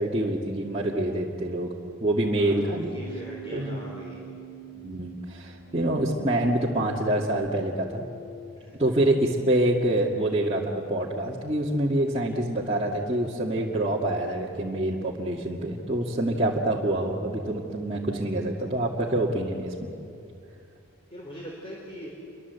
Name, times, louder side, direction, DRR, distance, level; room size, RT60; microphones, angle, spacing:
voice 1, 0.0-1.7 2.0-2.9 3.5-3.8 4.8-8.0 8.8-19.7, right 1 dB, 25° right, -5 dB, 2.1 m, -26 dB
voice 2, 2.4-4.2 8.6-8.8 21.1-22.1, equal, 25° left, -2 dB, 3.9 m, -41 dB
Keyboard (musical), 2.6-8.6, right 6 dB, 70° left, 7.4 m, -46 dB
29.0 x 24.5 x 8.2 m, 2.5 s
head